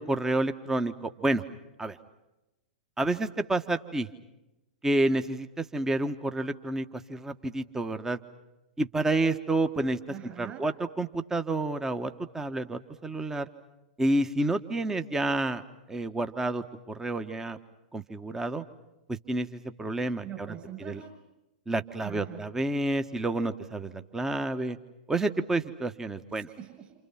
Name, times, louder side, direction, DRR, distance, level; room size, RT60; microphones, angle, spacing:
voice 1, 0.0-1.4 1.8-2.0 3.0-4.1 4.8-8.2 8.8-10.0 10.4-13.5 14.0-15.6 15.9-17.6 17.9-18.6 19.1-20.5 20.8-21.0 21.7-24.8 25.1-26.5, right 2 dB, 10° right, 9 dB, 1.5 m, -29 dB
voice 2, 10.1-10.6 20.2-21.1 22.0-22.4 26.3-26.9, right 10 dB, 25° right, 4 dB, 6.7 m, -43 dB
29.5 x 28.5 x 5.9 m, 0.96 s
figure-of-eight pair, 100°, 5 cm